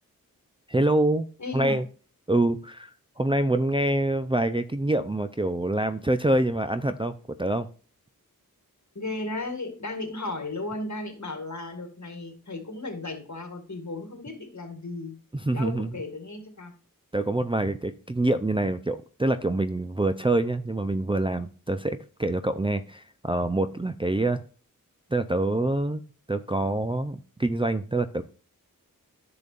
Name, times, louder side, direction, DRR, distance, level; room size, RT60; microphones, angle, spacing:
voice 1, 0.7-1.3 1.5-1.8 2.3-2.9 3.2-7.1 7.4-7.7 15.3-16.0 17.1-24.4 25.1-26.0 26.3-28.2, right 2 dB, 15° right, 7 dB, 0.5 m, -25 dB
voice 2, 1.4-1.8 9.0-15.1 15.5-16.7, left 2 dB, 50° left, 5 dB, 1.9 m, -35 dB
10.5 x 6.9 x 2.5 m, 0.38 s
wide cardioid pair, 45°, 36 cm